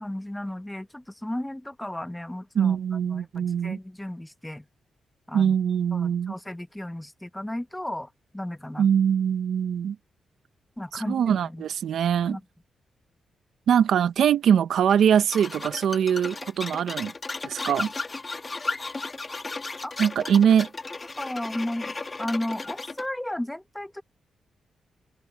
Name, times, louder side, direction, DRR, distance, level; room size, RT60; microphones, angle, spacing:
voice 1, 0.0-4.7 5.3-5.5 5.9-8.9 10.8-11.6 12.3-12.4 19.8-20.1 21.2-24.0, left 1 dB, 10° left, 0.9 m, -34 dB
voice 2, 2.5-3.8 5.3-6.3 8.8-10.0 10.9-12.4 13.7-17.1 17.4-17.9 20.0-20.7, right 8 dB, 80° right, 0.8 m, -22 dB
sound 1, 15.3-23.1, left 3 dB, 30° left, 1.3 m, -35 dB
cardioid pair, 75°, 0 cm